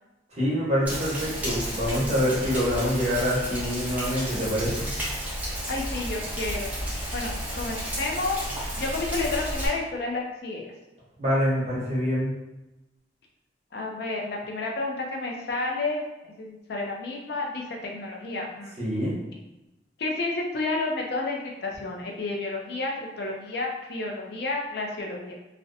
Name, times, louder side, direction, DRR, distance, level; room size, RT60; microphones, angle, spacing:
voice 1, 0.3-4.9 11.2-12.3 18.8-19.1, equal, 40° right, -7 dB, 0.9 m, -25 dB
Rain, 0.9-9.7, equal, 10° right, 0.6 m, -32 dB
voice 2, 5.4-6.7 7.1-8.5 8.8-10.7 13.7-18.8 20.0-25.3, left 3 dB, 60° left, 0 dB, 0.4 m, -31 dB
2.6 x 2.1 x 2.6 m, 0.99 s
head